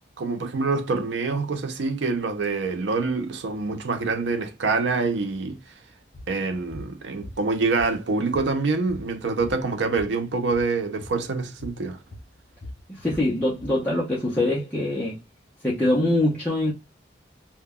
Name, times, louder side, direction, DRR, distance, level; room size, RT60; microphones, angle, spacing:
voice 1, 0.2-5.6 6.3-12.0, right 4 dB, 85° right, 0.5 m, -26 dB
sound 1, 6.1-6.3 6.7-6.9 7.2-8.1 8.3-10.2 10.4-10.7 11.0-11.2 11.6-11.8 12.1-13.8, left 1 dB, 55° left, 0.6 m, -41 dB
voice 2, 12.9-15.2 15.6-16.7, left 1 dB, 10° left, 0.5 m, -23 dB
2.2 x 2.1 x 3.5 m
head